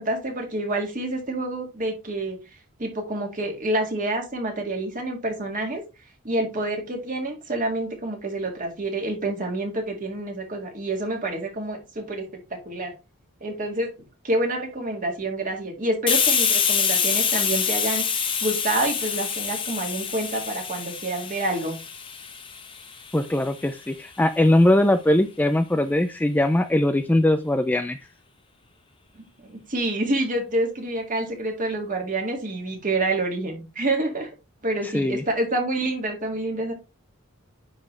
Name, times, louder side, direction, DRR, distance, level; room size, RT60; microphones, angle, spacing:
voice 1, 0.0-2.4 2.8-5.8 6.2-12.9 13.4-13.9 14.2-21.8 29.1-34.3 34.6-36.7, right 2 dB, 35° right, 2 dB, 1.9 m, -28 dB
Hiss, 16.1-23.5, left 7 dB, 25° left, 0.9 m, -26 dB
voice 2, 23.1-28.0 34.8-35.2, left 1 dB, 10° left, 8 dB, 0.3 m, -21 dB
9.6 x 3.8 x 3.1 m, 0.28 s
head